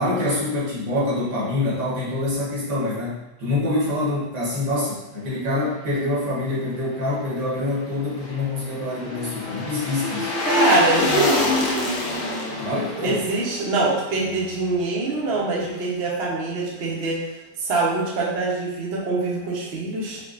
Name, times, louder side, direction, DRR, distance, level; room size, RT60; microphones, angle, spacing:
voice 1, 0.0-10.3 12.6-13.2, left 2 dB, 90° right, -7 dB, 1.9 m, -25 dB
sound 1, 7.8-15.0 15.3-15.4, left 2 dB, 70° left, 0.6 m, -26 dB
voice 2, 10.5-11.6 13.0-17.2 17.6-20.2, right 3 dB, 55° right, -4 dB, 0.7 m, -24 dB
4.8 x 2.3 x 2.4 m, 0.95 s
omnidirectional pair, 1.9 m